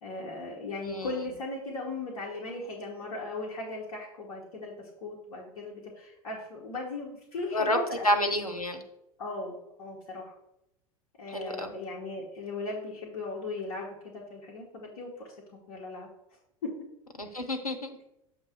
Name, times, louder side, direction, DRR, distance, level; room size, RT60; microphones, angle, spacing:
voice 1, 0.0-8.1 9.2-10.3 11.2-16.1 16.6-16.7, left 2 dB, 55° left, -3 dB, 1.3 m, -38 dB
voice 2, 0.8-1.2 7.5-8.8 11.3-11.7 17.2-18.0, left 1 dB, 90° left, 3 dB, 0.9 m, -29 dB
7.3 x 3.0 x 6.0 m, 0.82 s
figure-of-eight pair, 80°, 18 cm